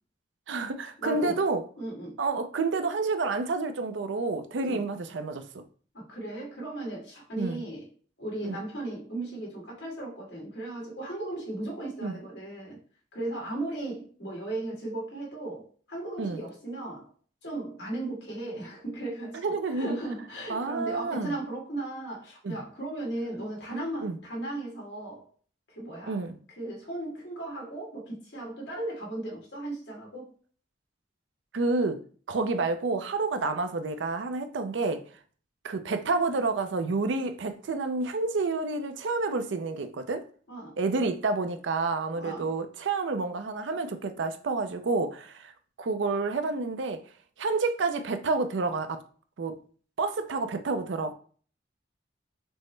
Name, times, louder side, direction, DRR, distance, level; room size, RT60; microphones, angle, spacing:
voice 1, 0.5-1.6 2.2-5.6 7.4-7.6 8.4-8.6 12.0-12.2 16.2-16.4 19.3-20.0 20.5-21.3 22.4-22.6 24.0-24.2 26.1-26.4 31.5-32.0 32.3-35.0 35.6-40.3 40.8-45.5 45.8-47.0 47.4-49.0 49.4-49.6 50.0-51.1, right 3 dB, 75° right, 0.5 m, -29 dB
voice 2, 1.0-1.4 1.8-2.2 4.6-4.8 5.9-7.9 8.2-12.8 13.1-17.1 17.4-25.3 25.7-26.2 26.6-30.3 40.5-40.8 42.1-42.5, right 2 dB, 70° left, 1.9 m, -36 dB
6.1 x 2.1 x 3.2 m
head